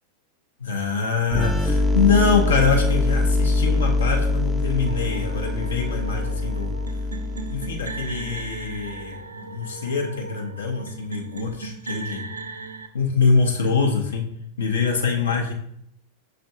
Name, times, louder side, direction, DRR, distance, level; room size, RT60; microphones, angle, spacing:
voice 1, 0.6-6.7 7.5-12.2 12.9-14.2 14.6-15.5, left 5 dB, 70° left, 1 dB, 0.7 m, -24 dB
sound 1, 1.3-8.9, left 2 dB, 5° right, 0.4 m, -24 dB
sound 2, 4.9-12.9, right 4 dB, 75° right, 0.4 m, -38 dB
6.0 x 3.3 x 2.7 m, 0.73 s
figure-of-eight pair, 90°, 0 cm